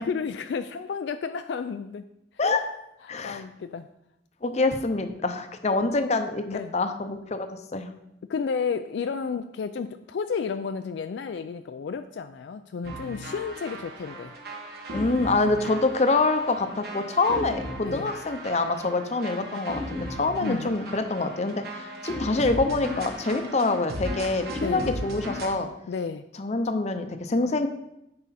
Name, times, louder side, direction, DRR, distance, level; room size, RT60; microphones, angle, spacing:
voice 1, 0.1-2.1 3.2-3.9 6.5-6.8 8.3-14.3 17.8-18.1 20.4-20.7 24.6-24.9 25.9-26.3, left 5 dB, 70° left, 9 dB, 0.3 m, -32 dB
voice 2, 3.1-3.4 4.4-7.9 14.9-25.7 26.4-27.7, left 3 dB, 40° left, 8 dB, 0.7 m, -26 dB
sound 1, 12.8-25.5, equal, 55° right, 1.4 m, -36 dB
9.7 x 4.8 x 4.2 m, 0.83 s
head